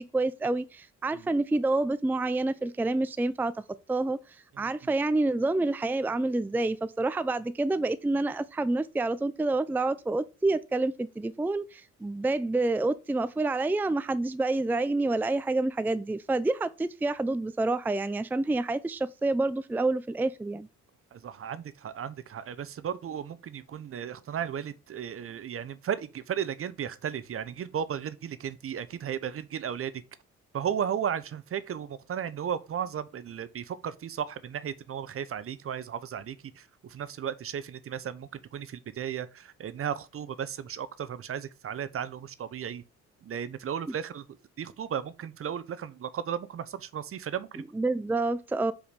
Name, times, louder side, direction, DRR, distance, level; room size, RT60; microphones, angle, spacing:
voice 1, 0.0-3.5 3.9-4.2 4.6-20.7 47.8-48.7, right 2 dB, 5° right, 0.4 m, -28 dB
voice 2, 21.1-30.0 30.5-42.8 43.2-44.2 44.6-47.6, right 8 dB, 50° right, 0.7 m, -35 dB
5.1 x 5.0 x 5.2 m
cardioid pair, 90°, 30 cm